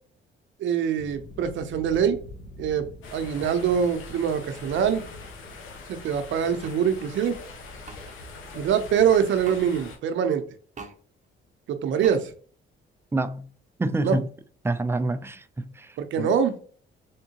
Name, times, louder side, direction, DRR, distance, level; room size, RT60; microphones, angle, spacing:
voice 1, 0.6-2.2 2.6-2.9 3.1-5.0 5.9-7.4 8.5-10.4 11.7-12.3 14.0-14.2 16.0-16.6, right 8 dB, 70° right, 0.7 m, -24 dB
sound 1, 0.9-9.9, left 2 dB, 60° left, 1.0 m, -46 dB
sound 2, 3.0-10.0, left 4 dB, 85° left, 1.1 m, -44 dB
sound 3, 6.6-6.8 7.9-8.0 9.4-9.6 10.8-11.0 12.0-12.2, right 4 dB, 35° right, 0.7 m, -41 dB
voice 2, 13.1-13.5 13.8-14.3 14.6-16.3, right 2 dB, 10° right, 0.4 m, -27 dB
3.6 x 3.6 x 2.8 m
cardioid pair, 90°, 20 cm